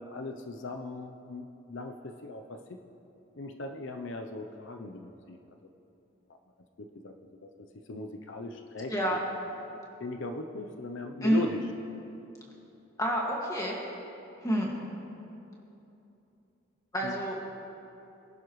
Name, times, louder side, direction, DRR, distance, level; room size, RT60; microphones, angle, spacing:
voice 1, 0.0-2.8 3.4-5.4 6.8-7.1 7.4-9.4 9.7-11.6 17.0-17.2, left 2 dB, 75° left, 5 dB, 0.7 m, -39 dB
voice 2, 8.9-9.2 11.2-11.5 13.0-13.8 14.4-14.7 16.9-17.4, equal, 15° left, -2 dB, 2.0 m, -28 dB
23.5 x 11.0 x 3.1 m, 2.9 s
head